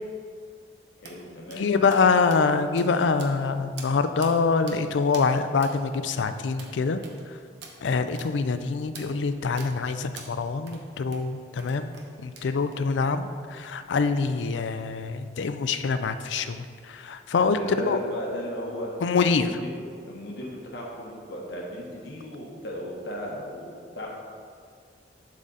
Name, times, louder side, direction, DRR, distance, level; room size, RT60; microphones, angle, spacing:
voice 1, 1.0-2.0 17.4-18.9 19.3-24.1, equal, 65° left, -3 dB, 1.4 m, -36 dB
sound 1, 1.0-1.2 1.5-1.6 1.9-2.1 2.3-2.4 2.8-2.9 3.2-3.5 3.8-3.9 4.2-4.3 4.7-4.8 5.1-5.3 5.6-5.8 6.1-6.2 6.6-6.7 7.0-7.2 7.6-7.8 8.1-8.3 8.9-9.1 9.6-9.7 10.2-10.3 10.7-10.8 11.1-11.2 11.6-12.1 12.4-12.8, right 5 dB, 70° right, 0.9 m, -44 dB
voice 2, 1.6-7.0 7.8-11.9 12.2-17.6 17.9-18.0 19.0-19.6, left 4 dB, 85° left, 10 dB, 0.4 m, -25 dB
10.5 x 3.8 x 4.1 m, 2.2 s
head